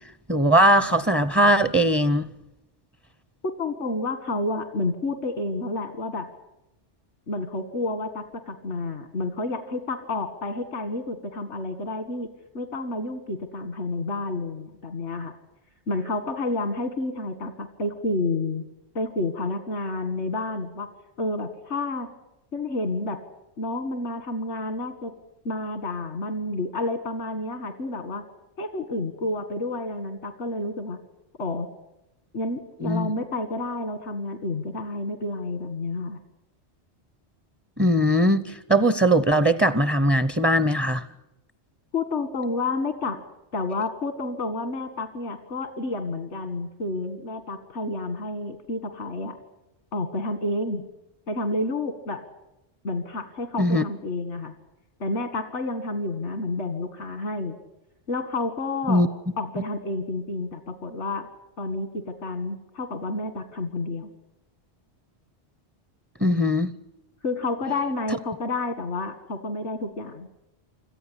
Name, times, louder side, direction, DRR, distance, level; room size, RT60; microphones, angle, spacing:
voice 1, 0.3-2.3 32.8-33.1 37.8-41.0 53.6-53.8 58.9-59.1 66.2-66.7, right 1 dB, 15° right, 14 dB, 0.6 m, -20 dB
voice 2, 3.4-6.3 7.3-12.3 12.5-15.4 15.9-18.7 18.9-20.9 21.2-22.1 22.5-23.2 23.6-25.1 25.5-28.2 28.6-31.0 31.4-31.7 32.3-36.2 41.9-43.2 43.5-49.4 49.9-50.8 51.3-52.2 52.8-54.5 55.0-57.6 58.1-59.0 59.4-61.3 61.6-64.1 67.2-70.3, left 2 dB, 90° left, 9 dB, 2.0 m, -30 dB
26.5 x 14.5 x 10.0 m, 0.92 s
omnidirectional pair, 1.2 m